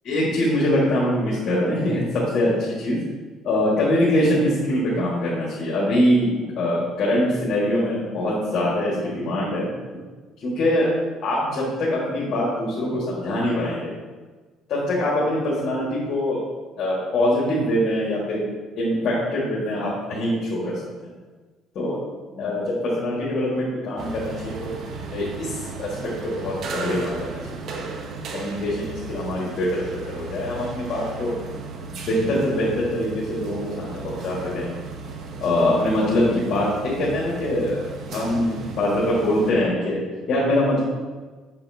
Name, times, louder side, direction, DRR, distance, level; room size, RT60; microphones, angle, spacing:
voice 1, 0.0-3.0 3.4-9.6 10.4-10.9 11.2-13.9 14.7-16.4 16.8-18.4 18.8-21.1 21.7-22.0 22.3-24.7 25.1-27.4 28.3-31.3 31.9-34.7 35.4-40.8, left 1 dB, 60° left, -6 dB, 1.6 m, -23 dB
sound 1, 24.0-39.5, right 4 dB, 60° right, 0.8 m, -35 dB
6.8 x 5.5 x 2.7 m, 1.4 s
cardioid pair, 95°, 0 cm